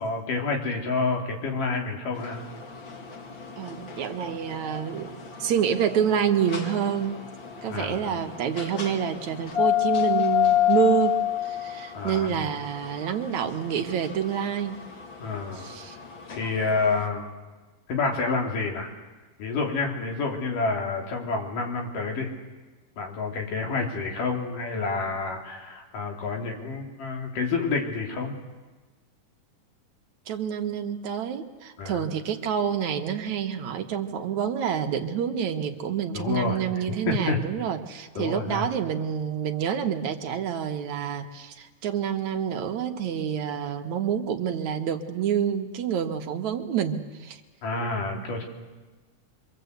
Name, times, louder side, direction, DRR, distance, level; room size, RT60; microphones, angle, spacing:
voice 1, 0.0-2.4 7.7-8.2 11.9-12.4 15.2-15.7 16.3-17.3 17.9-18.9 19.4-22.3 23.0-28.3 31.8-32.1 36.1-36.6 37.1-37.4 38.2-38.6 47.6-48.5, left 4 dB, 80° left, 2 dB, 4.9 m, -28 dB
sound 1, 2.1-17.1, left 11 dB, 40° left, 2.3 m, -30 dB
voice 2, 3.6-7.2 7.6-14.8 15.6-16.0 30.3-47.4, right 8 dB, 65° right, 6 dB, 2.7 m, -28 dB
25.5 x 24.5 x 8.2 m, 1.3 s
omnidirectional pair, 3.7 m